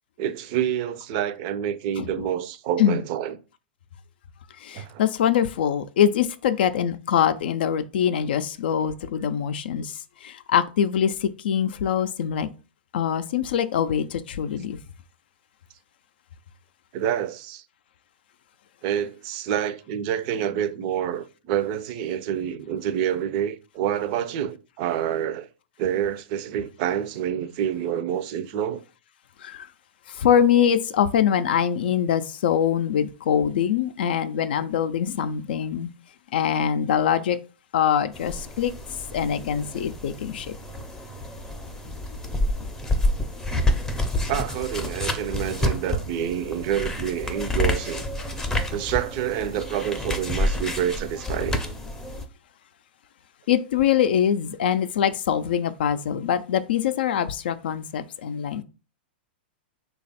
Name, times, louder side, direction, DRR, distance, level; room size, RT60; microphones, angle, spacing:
voice 1, 0.2-3.4 4.7-5.0 16.9-17.6 18.8-25.5 25.8-28.8 44.3-48.0 48.7-51.6, right 10 dB, 45° right, 0.5 m, -27 dB
voice 2, 4.6-12.5 12.9-14.8 29.4-29.7 30.1-35.9 36.3-37.4 37.7-38.7 39.1-40.5 53.5-58.6, left 9 dB, 70° left, 0.4 m, -23 dB
sound 1, 38.1-52.2, left 1 dB, 10° left, 0.5 m, -29 dB
3.3 x 2.3 x 4.0 m
hypercardioid pair, 120°, 6 cm